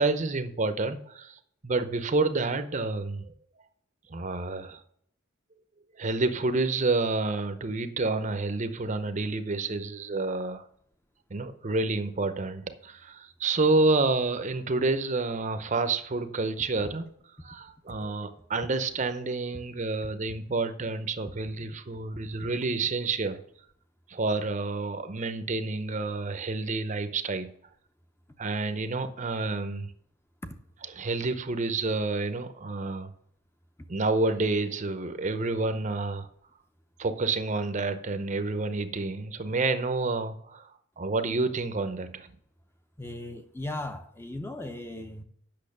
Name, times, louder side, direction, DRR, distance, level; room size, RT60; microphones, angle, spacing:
voice 1, 0.0-3.3 4.1-4.8 6.0-10.6 11.3-17.1 17.4-23.4 24.1-27.5 28.4-29.9 30.8-33.1 33.9-36.3 37.0-40.7 41.0-42.3, right 3 dB, 35° right, 0.7 m, -29 dB
voice 2, 43.0-45.2, left 1 dB, 10° left, 0.6 m, -37 dB
8.6 x 6.2 x 6.6 m
head